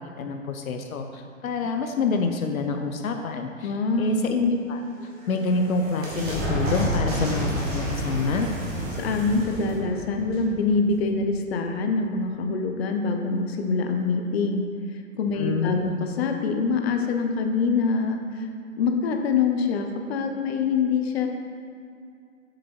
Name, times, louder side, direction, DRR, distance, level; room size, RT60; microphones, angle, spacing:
voice 1, 0.2-4.8 5.3-8.5 15.4-15.9, left 4 dB, 80° left, 5 dB, 0.7 m, -27 dB
voice 2, 3.6-4.2 9.0-14.6 15.2-18.5 18.8-21.3, left 4 dB, 50° left, 4 dB, 0.9 m, -25 dB
sound 1, 4.9-11.3, equal, 25° right, 1.8 m, -30 dB
7.3 x 5.3 x 4.4 m, 2.4 s
hypercardioid pair, 130°, 41 cm